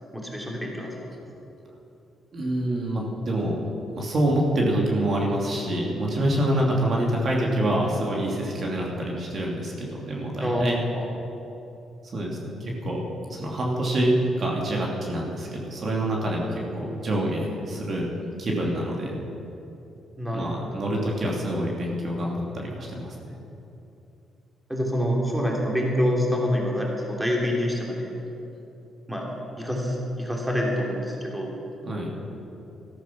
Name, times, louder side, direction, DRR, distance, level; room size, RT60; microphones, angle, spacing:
voice 1, 0.1-1.0 10.4-10.7 11.0-11.1 20.2-20.5 24.7-28.1 29.1-29.3 29.6-31.5, equal, 5° right, -2 dB, 2.9 m, -26 dB
voice 2, 2.3-3.6 4.0-10.8 12.0-13.0 13.3-19.1 20.3-23.3 31.8-32.1, right 1 dB, 45° right, -2 dB, 2.8 m, -26 dB
13.5 x 13.0 x 6.0 m, 2.8 s
cardioid pair, 90°, 0 cm